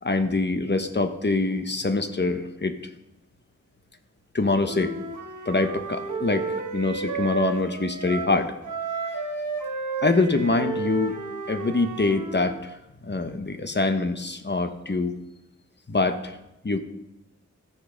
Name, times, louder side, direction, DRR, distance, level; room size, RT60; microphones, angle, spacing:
voice 1, 0.0-2.8 4.3-4.9 5.5-8.5 10.0-12.7 13.0-15.1 15.9-16.4 16.6-16.8, left 3 dB, 35° left, 8 dB, 1.0 m, -24 dB
Wind instrument woodwind instrument, 4.6-8.4 8.6-12.6, right 4 dB, 90° right, 1.4 m, -32 dB
14.0 x 6.7 x 5.1 m, 0.91 s
wide cardioid pair, 70°, 29 cm